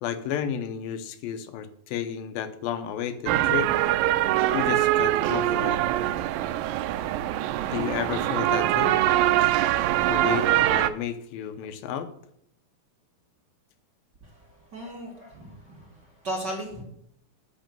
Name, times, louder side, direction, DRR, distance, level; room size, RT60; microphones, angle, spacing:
voice 1, 0.0-3.7 4.5-5.8 7.7-9.0 10.1-12.1, left 9 dB, 80° left, 10 dB, 2.6 m, -32 dB
sound 1, 3.3-10.9, right 14 dB, 80° right, 2.2 m, -23 dB
voice 2, 14.2-16.8, right 1 dB, 35° right, 0 dB, 2.1 m, -37 dB
10.5 x 6.1 x 7.5 m, 0.71 s
omnidirectional pair, 4.2 m